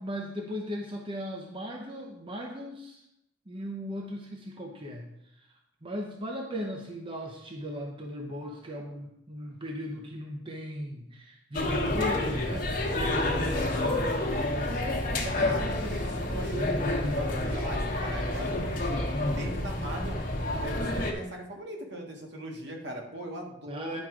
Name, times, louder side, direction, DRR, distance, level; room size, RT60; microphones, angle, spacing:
voice 1, 0.0-3.0 3.5-5.1 5.8-12.7 15.1-15.4 23.7-24.0, equal, 30° right, 1 dB, 0.8 m, -37 dB
sound 1, 11.5-21.1, left 1 dB, 45° left, 1.3 m, -29 dB
voice 2, 13.0-14.1 15.2-20.2 20.6-24.0, right 1 dB, 65° right, 1 dB, 1.6 m, -40 dB
10.5 x 4.7 x 4.9 m, 0.80 s
head